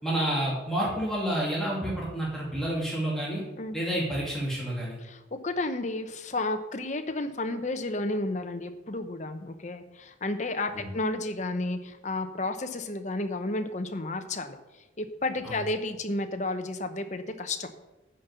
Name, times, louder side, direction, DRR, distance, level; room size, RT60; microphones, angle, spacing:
voice 1, 0.0-3.4 3.7-5.0 10.7-10.9 15.4-15.6, right 1 dB, ahead, -7 dB, 2.6 m, -29 dB
voice 2, 5.0-14.6 15.0-17.8, left 2 dB, 40° left, 7 dB, 0.9 m, -32 dB
9.7 x 5.4 x 8.2 m, 1.0 s
head